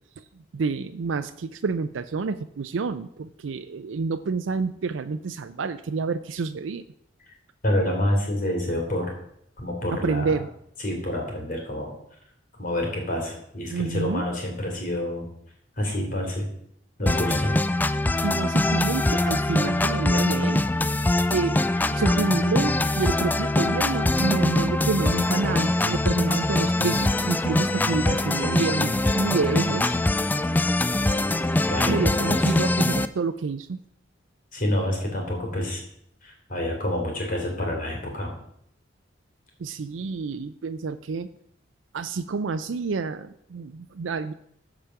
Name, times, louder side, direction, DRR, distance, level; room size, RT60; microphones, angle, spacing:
voice 1, 0.2-6.9 9.9-10.5 13.7-14.2 18.2-20.6 21.3-21.6 21.9-29.9 31.9-33.8 39.6-41.3 41.9-44.3, right 4 dB, 90° right, 9 dB, 0.5 m, -28 dB
voice 2, 7.6-9.1 9.6-10.3 10.8-11.9 12.6-15.2 15.8-16.5 17.0-17.5 31.7-32.4 34.5-35.8 36.2-38.3, left 1 dB, 45° left, 0 dB, 3.4 m, -27 dB
sound 1, 17.1-33.1, left 2 dB, 10° left, 0.3 m, -23 dB
14.5 x 5.0 x 5.8 m, 0.71 s
head